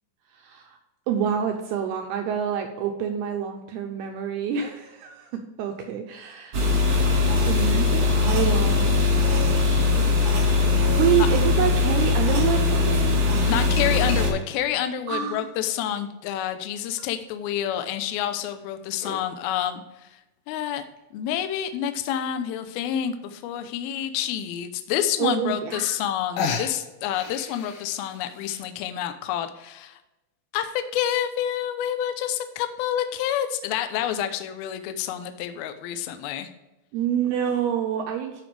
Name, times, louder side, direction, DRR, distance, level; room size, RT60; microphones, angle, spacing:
voice 1, 0.3-0.8 1.1-6.6 7.5-9.3 10.0-10.1 10.7-13.2 15.1-15.5 25.2-26.0 36.9-38.4, right 9 dB, 85° right, 3 dB, 2.3 m, -27 dB
sound 1, 6.5-14.3, left 3 dB, 60° right, 1.5 m, -21 dB
voice 2, 13.5-19.8 20.5-20.8 21.1-30.0 30.5-36.5, left 10 dB, 90° left, 8 dB, 2.1 m, -28 dB
sound 2, 13.8-14.7 15.4-16.3 17.0-17.1 18.3-19.3 21.0-21.1 21.6-21.7 21.8-21.9 22.3-22.6 23.6-23.7 24.2-24.3 25.4-25.5 25.7-26.1 26.4-28.6, left 5 dB, 70° left, 2.9 m, -34 dB
13.5 x 5.3 x 3.4 m, 0.98 s
omnidirectional pair, 5.5 m